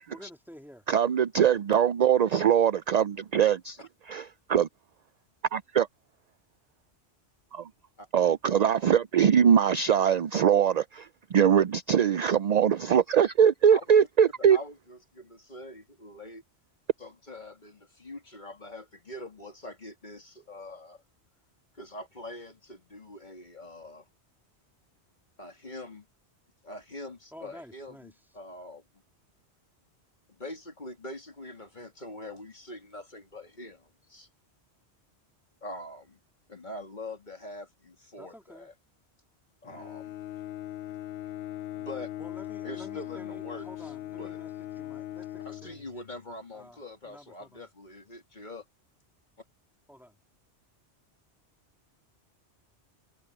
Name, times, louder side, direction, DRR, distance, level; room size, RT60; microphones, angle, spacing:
voice 1, 0.0-0.8 27.3-28.1 38.2-38.7 42.2-45.9 46.5-47.7 49.9-50.2, equal, ahead, 3.1 m, -50 dB
voice 2, 0.9-3.8 4.1-4.7 5.5-5.9 7.5-7.7 8.1-14.6, right 8 dB, 60° right, 0.4 m, -22 dB
voice 3, 14.5-16.4 17.0-21.0 21.7-24.1 25.4-26.1 26.6-28.8 30.3-34.3 35.6-36.2 36.5-38.7 39.6-40.1 41.7-42.1 42.6-43.9 44.2-44.4 45.4-48.6, left 1 dB, 40° left, 2.8 m, -43 dB
Bowed string instrument, 39.6-46.3, left 13 dB, 65° left, 0.8 m, -40 dB
omnidirectional pair, 1.2 m